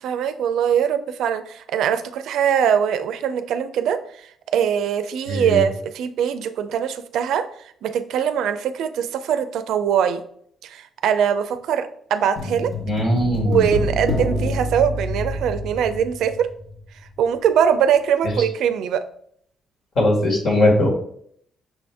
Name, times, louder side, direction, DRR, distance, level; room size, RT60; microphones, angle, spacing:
voice 1, 0.0-4.0 4.5-7.4 7.8-10.2 10.6-12.7 13.4-16.5 17.2-19.0, right 8 dB, 80° right, 11 dB, 0.4 m, -22 dB
voice 2, 5.3-5.6 12.9-13.7 20.0-20.9, left 1 dB, 60° left, -1 dB, 1.9 m, -19 dB
sound 1, 12.4-16.8 17.1-17.2, left 2 dB, 40° left, 1.1 m, -27 dB
6.0 x 2.6 x 3.4 m, 0.65 s
cardioid pair, 90°, 0 cm